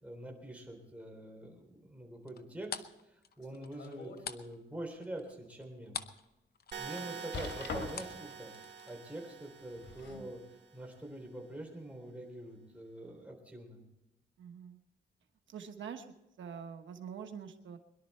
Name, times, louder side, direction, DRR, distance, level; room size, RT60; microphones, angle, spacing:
voice 1, 0.0-2.8 3.4-6.0 6.8-8.5 8.9-10.4 10.7-13.8, right 1 dB, 5° right, 0 dB, 3.7 m, -45 dB
sound 1, 2.3-6.3 6.5-8.9, left 7 dB, 55° left, 0.8 m, -45 dB
sound 2, 3.4-4.2 4.8-4.9 5.5-5.6 7.3-8.2 9.6-10.3 11.2-11.3, left 3 dB, 80° left, 3.2 m, -42 dB
sound 3, 6.7-10.7, right 6 dB, 65° right, 2.1 m, -47 dB
voice 2, 14.4-14.8 15.5-16.1 16.4-17.8, right 7 dB, 90° right, 6 dB, 1.2 m, -45 dB
22.0 x 11.5 x 4.4 m, 0.94 s
wide cardioid pair, 130°, 19 cm